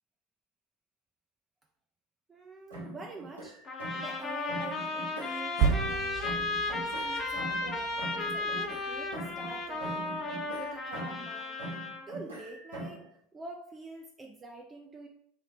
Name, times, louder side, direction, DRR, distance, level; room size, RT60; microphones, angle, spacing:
voice 1, 2.3-3.6 4.0-6.3 6.7-8.1 8.3-10.1 10.6-11.6 12.1-13.1 13.3-15.1, right 2 dB, 20° right, 1 dB, 0.5 m, -46 dB
sound 1, 2.7-4.2 4.5-6.0 6.2-9.5 9.8-11.3 11.6-13.1, right 1 dB, 85° right, 1.3 m, -42 dB
sound 2, 3.6-12.0, left 3 dB, 30° left, 0.8 m, -35 dB
sound 3, 5.6-9.2 9.8-9.9, right 6 dB, 55° right, 1.4 m, -32 dB
3.2 x 2.8 x 4.4 m, 0.70 s
figure-of-eight pair, 75°, 0 cm